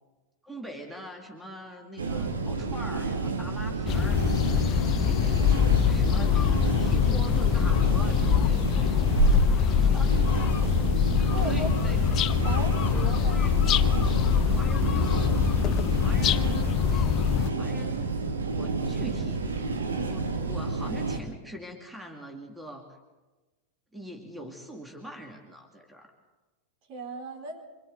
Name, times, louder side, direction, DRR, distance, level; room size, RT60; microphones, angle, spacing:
voice 1, 0.4-4.7 5.0-9.1 9.8-10.1 11.5-12.0 13.2-13.5 14.6-15.5 16.0-17.1 17.6-18.0 18.5-19.6 20.1-23.0 23.9-26.1, equal, 5° right, 2 dB, 2.4 m, -42 dB
sound 1, 2.0-21.2, right 3 dB, 70° right, 2.2 m, -29 dB
sound 2, 3.9-17.5, left 9 dB, 35° left, 0.6 m, -24 dB
voice 2, 11.3-12.0 12.4-13.5 24.3-24.5 26.9-27.6, right 2 dB, 45° right, 1 dB, 4.2 m, -38 dB
26.0 x 25.5 x 4.0 m, 1.2 s
figure-of-eight pair, 90°, 0 cm